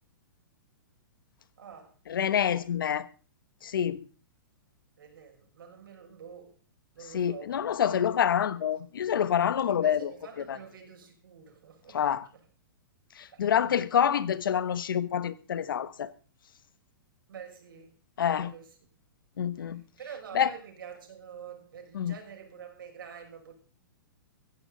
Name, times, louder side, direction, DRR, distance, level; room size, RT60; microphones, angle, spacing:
voice 1, 1.6-1.9 5.0-6.6 6.9-7.6 9.7-12.0 12.3-12.4 13.3-13.5 17.3-17.9 18.4-18.8 19.6-19.7 20.0-23.5, right 7 dB, 80° right, 6.3 m, -47 dB
voice 2, 2.1-3.1 3.6-4.0 7.1-10.1 10.5-10.6 11.9-12.2 13.2-16.1 18.2-18.5 19.4-19.8 20.3-20.5 21.9-22.1, left 9 dB, 80° left, 1.2 m, -27 dB
16.0 x 15.0 x 4.0 m
hypercardioid pair, 165°, 11 cm